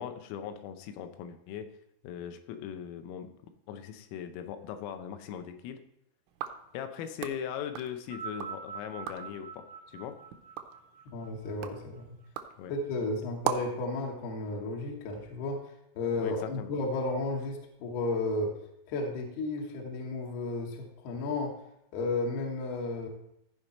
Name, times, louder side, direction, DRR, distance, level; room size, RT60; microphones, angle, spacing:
voice 1, 0.0-1.7 2.0-3.3 3.7-5.8 6.7-9.7 9.9-10.2 12.6-12.7 16.2-16.7, left 8 dB, 85° left, 8 dB, 3.5 m, -39 dB
sound 1, 6.3-8.6 8.9-9.4 9.9-13.9, right 11 dB, 80° right, 2.7 m, -40 dB
sound 2, 8.0-12.5 13.4-13.5, right 5 dB, 60° right, 1.3 m, -45 dB
voice 2, 11.1-12.1 12.7-15.6 16.0-18.5 18.9-21.5 21.9-23.1, left 2 dB, 70° left, 0 dB, 2.6 m, -33 dB
15.0 x 5.2 x 4.2 m, 0.80 s
omnidirectional pair, 5.8 m